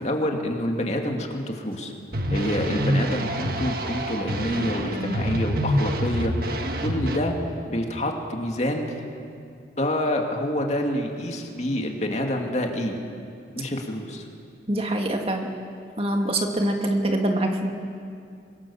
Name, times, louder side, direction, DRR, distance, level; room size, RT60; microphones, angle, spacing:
voice 1, 0.0-1.9 2.3-6.5 6.8-7.4 7.7-9.0 9.8-13.0 13.6-14.3, left 1 dB, 40° left, 2 dB, 2.5 m, -27 dB
sound 1, 2.1-7.2, equal, 55° right, 1.7 m, -26 dB
voice 2, 14.7-15.5 16.0-17.7, right 1 dB, 35° right, 3 dB, 1.9 m, -24 dB
25.0 x 24.5 x 7.2 m, 2.4 s
head